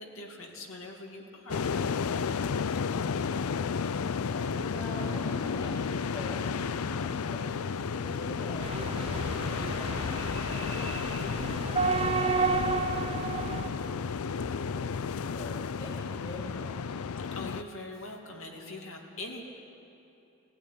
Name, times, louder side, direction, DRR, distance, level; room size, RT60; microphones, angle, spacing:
voice 1, 0.0-2.2 17.3-19.4, left 2 dB, 70° left, 1 dB, 2.4 m, -43 dB
sound 1, 1.5-17.6, left 6 dB, 85° left, 0.5 m, -32 dB
voice 2, 2.7-3.4 4.1-16.9, equal, 25° left, -4 dB, 2.6 m, -45 dB
sound 2, 8.6-13.7, right 4 dB, 25° right, 0.9 m, -31 dB
18.5 x 14.5 x 10.0 m, 2.8 s
head